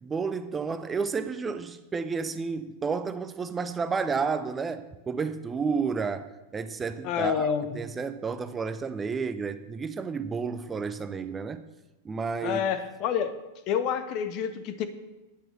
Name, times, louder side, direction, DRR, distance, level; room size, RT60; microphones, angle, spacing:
voice 1, 0.0-11.6 12.0-12.6, right 5 dB, 15° right, 11 dB, 0.6 m, -31 dB
voice 2, 7.0-7.7 12.4-13.4 13.7-14.9, left 8 dB, 40° left, 11 dB, 1.1 m, -28 dB
10.5 x 8.7 x 6.2 m, 1.0 s
figure-of-eight pair, 90°, 0 cm